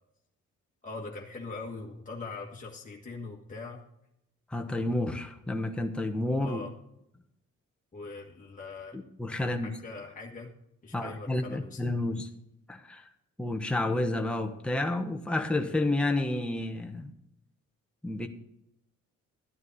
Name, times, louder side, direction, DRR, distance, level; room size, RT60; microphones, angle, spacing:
voice 1, 0.8-3.8 6.4-6.7 7.9-9.0 9.4-10.5 10.8-11.8, left 3 dB, 25° left, -2 dB, 1.6 m, -41 dB
voice 2, 4.5-6.6 8.9-9.7 10.9-12.3 12.7-13.1 13.4-17.1 18.0-18.3, left 2 dB, 5° left, 4 dB, 1.0 m, -30 dB
12.5 x 9.5 x 4.1 m, 0.80 s
cardioid pair, 90°, 30 cm